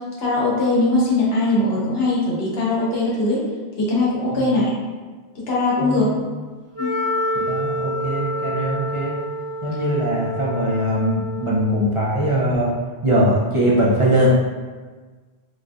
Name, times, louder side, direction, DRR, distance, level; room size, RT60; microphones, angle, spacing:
voice 1, 0.2-3.4 3.8-4.6 5.3-6.1 6.8-6.9, left 2 dB, 75° left, -6 dB, 1.0 m, -20 dB
voice 2, 5.8-6.2 7.4-9.2 9.6-12.7 13.0-14.3, right 1 dB, 45° right, -6 dB, 0.4 m, -21 dB
Wind instrument woodwind instrument, 6.7-11.8, equal, 10° right, 1.2 m, -28 dB
3.9 x 2.5 x 2.3 m, 1.4 s
omnidirectional pair, 1.1 m